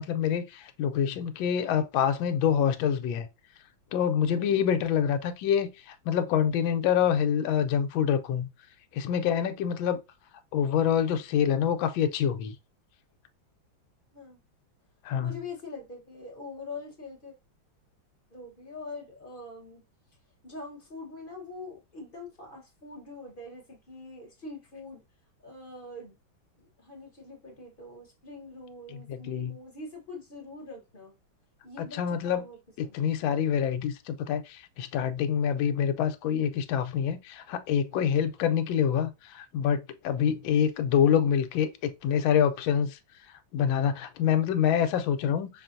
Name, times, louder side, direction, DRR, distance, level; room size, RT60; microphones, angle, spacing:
voice 1, 0.0-3.3 3.9-8.5 8.9-10.0 10.5-12.5 15.0-15.3 28.9-29.6 31.8-32.4 32.8-43.0 43.5-45.5, left 8 dB, 80° left, 1.3 m, -26 dB
voice 2, 4.3-4.6 14.1-14.4 15.2-17.3 18.3-19.8 20.4-25.0 25.4-26.1 26.6-31.1 31.6-33.0, left 3 dB, 35° left, 1.0 m, -44 dB
5.7 x 2.4 x 2.5 m
omnidirectional pair, 2.2 m